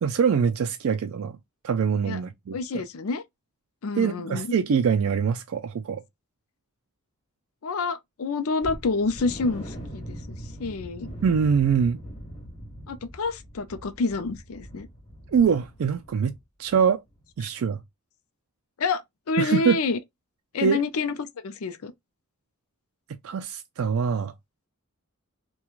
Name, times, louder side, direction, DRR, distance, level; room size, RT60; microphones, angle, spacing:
voice 1, 0.0-1.4 1.6-2.8 4.0-6.0 11.2-12.0 15.3-16.3 16.6-17.0 17.4-17.8 19.4-19.8 20.6-20.8 23.2-24.3, right 6 dB, 65° right, 0.3 m, -23 dB
voice 2, 2.5-3.2 3.8-4.5 7.6-11.1 12.9-14.9 18.8-19.0 19.3-20.0 20.5-21.9, left 3 dB, 70° left, 0.5 m, -28 dB
sound 1, 8.6-16.4 16.6-16.8 17.2-17.3, equal, 30° left, 1.6 m, -41 dB
3.0 x 2.2 x 2.3 m
head